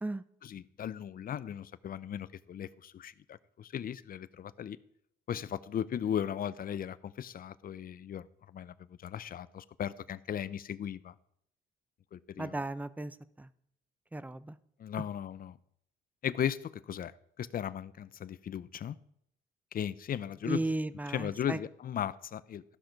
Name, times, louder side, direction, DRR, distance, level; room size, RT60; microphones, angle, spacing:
voice 1, 0.4-4.8 5.3-8.2 8.5-8.7 9.0-11.1 12.1-12.6 14.8-15.6 16.2-17.1 17.4-19.0 19.7-20.6 21.1-22.6, left 9 dB, 45° left, 0.5 m, -37 dB
voice 2, 12.4-13.5 14.1-14.5 20.5-21.6, right 2 dB, 10° right, 0.5 m, -35 dB
14.0 x 6.0 x 5.2 m
cardioid pair, 90°, 20 cm